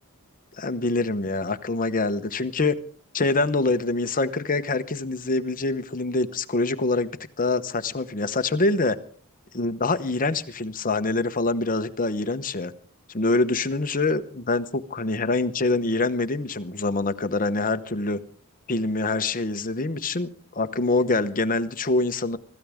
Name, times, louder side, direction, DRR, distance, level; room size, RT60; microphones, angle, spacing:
voice 1, 0.6-2.8 3.1-9.0 9.5-12.7 13.1-18.2 18.7-22.4, left 3 dB, 40° left, 1.0 m, -25 dB
25.0 x 14.0 x 3.6 m
head